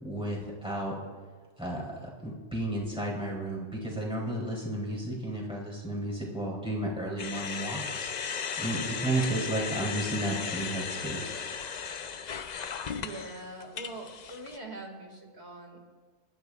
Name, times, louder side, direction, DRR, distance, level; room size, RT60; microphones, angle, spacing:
voice 1, 0.0-1.0 1.6-11.4, right 1 dB, 5° right, -4 dB, 3.1 m, -33 dB
sound 1, 7.2-14.6, left 6 dB, 50° left, 0.6 m, -36 dB
voice 2, 13.0-15.8, right 2 dB, 70° right, 1 dB, 2.3 m, -43 dB
24.5 x 12.0 x 2.3 m, 1.4 s
omnidirectional pair, 1.2 m